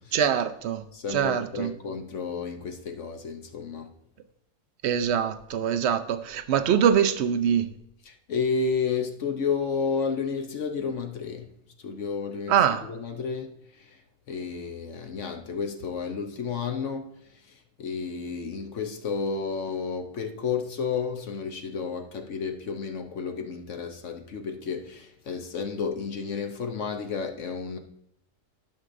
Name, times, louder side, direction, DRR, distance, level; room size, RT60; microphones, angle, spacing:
voice 1, 0.1-0.8 1.1-1.7 4.8-7.7 12.5-12.8, right 8 dB, 60° right, 0.7 m, -23 dB
voice 2, 0.9-3.9 8.1-11.6 11.8-14.0 14.3-17.1 17.5-27.8, left 5 dB, 60° left, 1.0 m, -31 dB
13.0 x 6.4 x 2.6 m
omnidirectional pair, 1.6 m